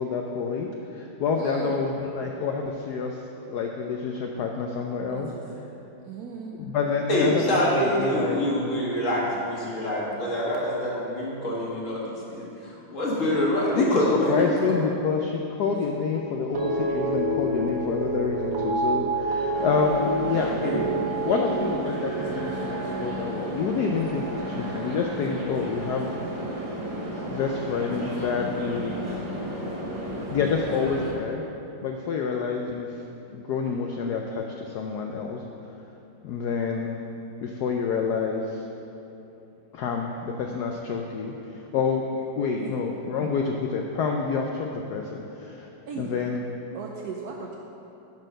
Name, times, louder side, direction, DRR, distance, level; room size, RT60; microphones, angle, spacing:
voice 1, 0.0-3.2 3.5-5.3 6.5-8.4 13.8-13.9 14.1-20.5 21.2-26.1 27.3-29.0 30.3-31.4 31.8-33.0 33.3-35.4 36.2-37.0 37.4-38.7 39.7-45.7 46.0-46.4, left 5 dB, 80° left, 2 dB, 0.9 m, -28 dB
voice 2, 1.3-1.9 5.1-5.4 6.0-6.6 42.6-42.8 45.9-46.2 46.7-47.5, right 5 dB, 75° right, -1 dB, 0.8 m, -36 dB
voice 3, 7.1-14.8 20.6-20.9, equal, 40° left, -5 dB, 1.8 m, -26 dB
sound 1, 16.5-26.9 27.2-27.8, right 2 dB, 50° right, 1.2 m, -30 dB
sound 2, 19.5-31.1, equal, 20° right, 0.7 m, -33 dB
9.9 x 4.5 x 6.3 m, 2.9 s
omnidirectional pair, 2.3 m